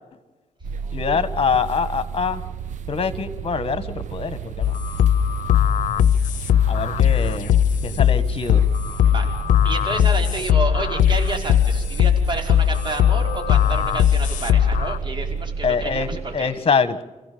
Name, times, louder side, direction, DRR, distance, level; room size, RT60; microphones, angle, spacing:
sound 1, 0.6-16.4, right 7 dB, 75° right, 0.8 m, -32 dB
voice 1, 0.9-2.4 2.9-4.7 6.7-8.6 15.6-16.1 16.3-17.0, left 5 dB, 45° left, 13 dB, 1.7 m, -24 dB
sound 2, 4.6-15.0, left 10 dB, 85° left, 0.7 m, -19 dB
voice 2, 9.6-16.5, right 2 dB, 40° right, 2 dB, 5.2 m, -30 dB
28.5 x 16.0 x 7.0 m, 1.2 s
cardioid pair, 95°, 13 cm